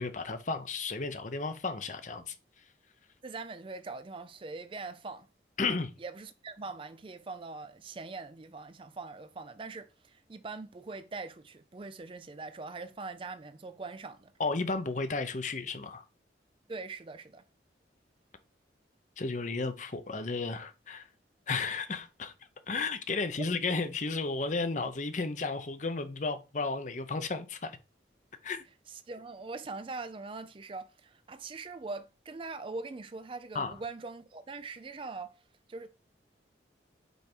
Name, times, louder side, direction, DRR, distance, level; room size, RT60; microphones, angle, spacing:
voice 1, 0.0-2.3 5.6-5.9 14.4-16.0 19.2-21.0 21.5-22.3 22.7-27.8 28.4-28.6 33.5-33.7, left 3 dB, 40° left, 0.7 m, -33 dB
voice 2, 3.2-5.3 6.0-14.3 16.7-17.4 29.1-35.3 35.7-35.9, right 3 dB, 30° right, 0.4 m, -42 dB
5.4 x 4.6 x 4.4 m
head